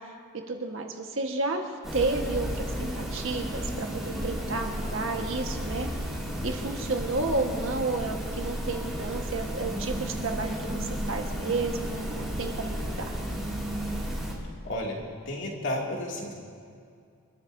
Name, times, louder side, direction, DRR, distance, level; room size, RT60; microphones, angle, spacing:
voice 1, 0.5-5.9 6.4-13.2, right 3 dB, 65° right, 2 dB, 1.5 m, -31 dB
sound 1, 1.8-14.3, equal, ahead, 2.6 m, -33 dB
voice 2, 14.6-16.3, left 1 dB, 60° left, -2 dB, 2.6 m, -32 dB
28.0 x 13.0 x 2.8 m, 2.3 s
head